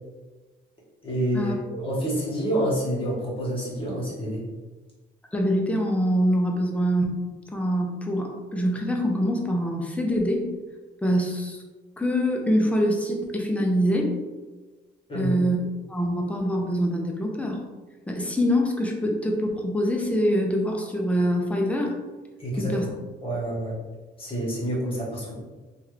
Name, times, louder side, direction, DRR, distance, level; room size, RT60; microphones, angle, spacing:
voice 1, 1.0-4.4 15.1-15.3 22.4-22.9 23.2-23.8 24.2-25.3, right 1 dB, 25° left, -6 dB, 1.5 m, -28 dB
voice 2, 5.3-7.2 7.5-10.5 11.0-11.6 12.0-14.1 15.1-15.6 15.9-17.6 18.1-22.0 22.6-22.9, equal, 5° left, 0 dB, 0.6 m, -24 dB
2.9 x 2.4 x 3.2 m, 1.3 s
cardioid pair, 90°, 20 cm